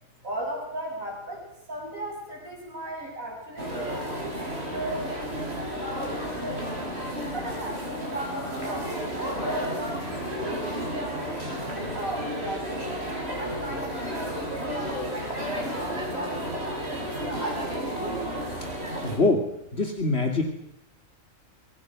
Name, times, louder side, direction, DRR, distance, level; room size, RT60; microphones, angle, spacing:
voice 1, 0.2-6.7 7.3-8.9 9.4-12.8 13.4-15.8 16.1-17.8, right 1 dB, 90° right, -1 dB, 8.2 m, -37 dB
sound 1, 3.6-19.2, equal, 50° right, 8.0 m, -32 dB
voice 2, 19.0-20.4, left 2 dB, 50° left, 3 dB, 3.1 m, -24 dB
28.0 x 25.0 x 6.2 m, 0.76 s
omnidirectional pair, 1.4 m